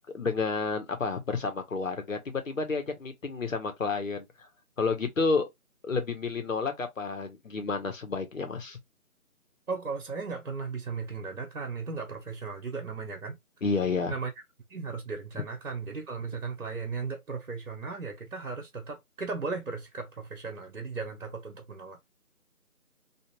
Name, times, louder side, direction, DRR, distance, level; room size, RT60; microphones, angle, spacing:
voice 1, 0.1-4.3 4.8-5.5 5.8-8.8 13.6-14.1, left 4 dB, 60° left, 0.9 m, -30 dB
voice 2, 9.7-13.4 14.1-14.3 14.7-22.0, right 4 dB, 60° right, 1.0 m, -36 dB
2.5 x 2.4 x 3.0 m
figure-of-eight pair, 165°, 45 cm